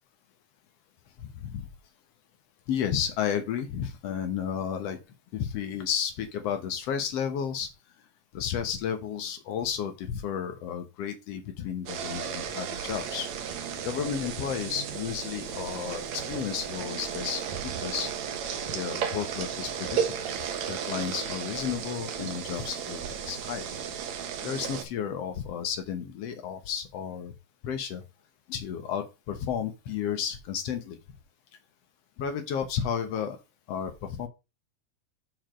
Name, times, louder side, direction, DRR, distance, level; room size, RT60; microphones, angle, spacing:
voice 1, 1.2-1.7 2.7-5.0 5.3-7.7 8.3-13.3 13.8-17.4 17.8-18.1 18.7-20.0 20.6-23.7 24.4-27.3 27.6-28.0 28.5-31.0 32.2-33.4 33.7-34.3, left 8 dB, 75° left, 7 dB, 1.4 m, -32 dB
sound 1, 11.9-24.8, right 7 dB, 60° right, 2.0 m, -34 dB
7.3 x 4.5 x 6.2 m, 0.26 s
omnidirectional pair, 4.4 m